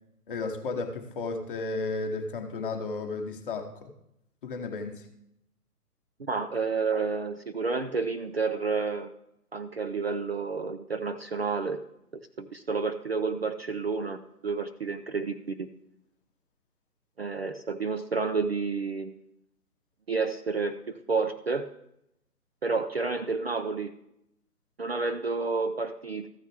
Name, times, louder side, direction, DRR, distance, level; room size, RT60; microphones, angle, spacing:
voice 1, 0.3-3.9 4.4-5.1, left 3 dB, 35° left, 4 dB, 1.1 m, -33 dB
voice 2, 6.2-9.1 9.5-11.8 12.4-15.7 17.2-19.1 20.1-20.8 21.1-21.7 22.6-23.9 24.8-26.3, right 4 dB, 40° right, 9 dB, 0.4 m, -30 dB
14.0 x 6.2 x 3.5 m, 0.79 s
hypercardioid pair, 150°, 47 cm